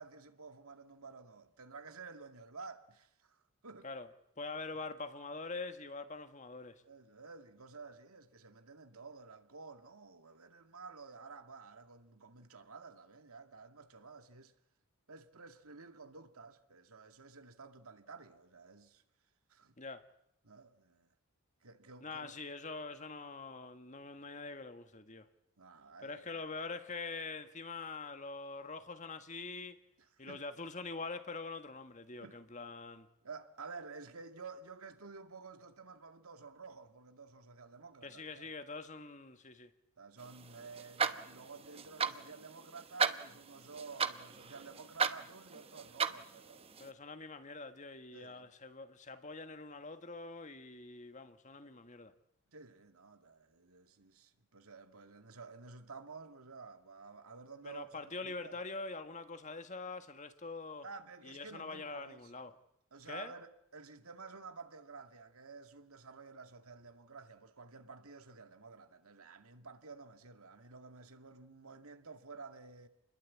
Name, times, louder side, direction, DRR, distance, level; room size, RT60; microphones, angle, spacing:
voice 1, 0.0-3.9 6.8-14.5 15.1-19.0 19.5-19.8 20.4-21.1 21.6-22.4 25.6-26.4 30.0-30.5 32.2-32.4 33.2-38.5 40.0-46.7 48.1-48.5 52.5-58.6 60.8-62.3 62.9-72.9, right 4 dB, 80° right, 2.2 m, -52 dB
voice 2, 4.4-6.8 19.8-20.0 22.0-25.3 26.0-29.8 30.2-33.1 38.0-39.7 46.8-52.1 57.6-60.9 61.2-62.5 63.1-63.3, left 3 dB, 35° left, 1.6 m, -44 dB
sound 1, 40.2-46.9, right 5 dB, 25° right, 1.0 m, -38 dB
29.0 x 21.0 x 8.6 m
head